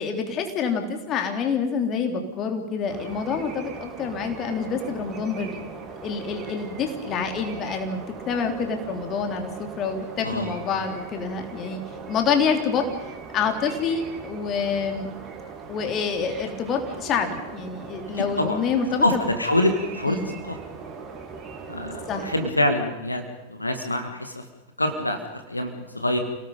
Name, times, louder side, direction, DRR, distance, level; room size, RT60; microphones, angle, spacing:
voice 1, 0.0-5.6 6.0-11.8 12.1-12.9 13.3-15.1 15.7-19.2 20.1-20.4 22.1-22.3, left 6 dB, 30° left, 5 dB, 3.2 m, -27 dB
sound 1, 2.9-22.5, right 5 dB, 25° right, 3.4 m, -39 dB
voice 2, 10.2-10.5 18.1-18.6 19.0-20.2 20.5-20.6 21.7-23.2 23.5-24.4 24.8-25.2 25.5-26.2, left 1 dB, 85° left, 6 dB, 1.8 m, -25 dB
29.5 x 18.0 x 5.4 m, 1.0 s
figure-of-eight pair, 90°, 0 cm